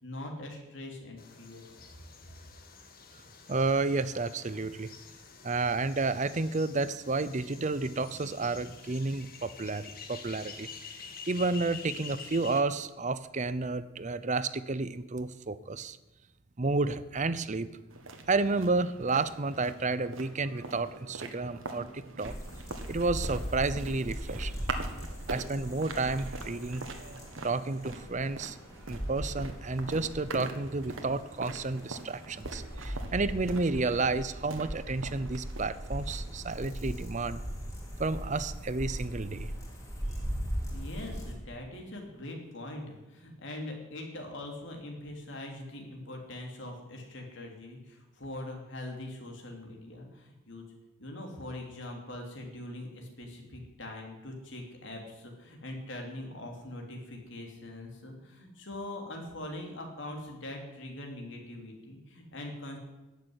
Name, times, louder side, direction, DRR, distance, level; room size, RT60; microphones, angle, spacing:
voice 1, 0.0-1.6 40.7-50.6 51.0-62.8, left 1 dB, 65° left, 1 dB, 3.1 m, -42 dB
sound 1, 1.2-12.6, left 6 dB, 45° left, 1.6 m, -48 dB
voice 2, 3.5-4.9 5.4-10.7 11.3-16.0 16.6-17.7 18.3-22.3 22.9-24.5 25.3-26.8 27.4-28.6 28.9-37.4 38.0-39.5, right 3 dB, 35° right, 15 dB, 0.7 m, -31 dB
sound 2, 17.9-36.5, right 3 dB, 90° right, 1.6 m, -44 dB
sound 3, 22.2-41.3, equal, 15° left, 3.1 m, -39 dB
14.5 x 6.8 x 9.8 m, 1.0 s
head